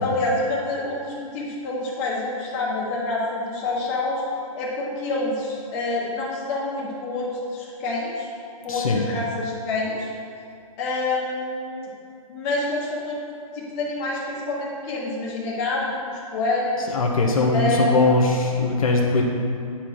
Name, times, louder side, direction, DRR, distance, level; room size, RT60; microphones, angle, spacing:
voice 1, 0.0-4.2 4.5-8.3 8.6-10.1 10.8-11.9 12.3-13.2 13.5-16.9 17.5-17.9, left 2 dB, 25° left, -6 dB, 1.4 m, -27 dB
voice 2, 8.7-9.0 16.8-19.2, left 3 dB, 70° left, 0 dB, 1.0 m, -20 dB
9.3 x 4.3 x 4.7 m, 2.5 s
hypercardioid pair, 160°, 19 cm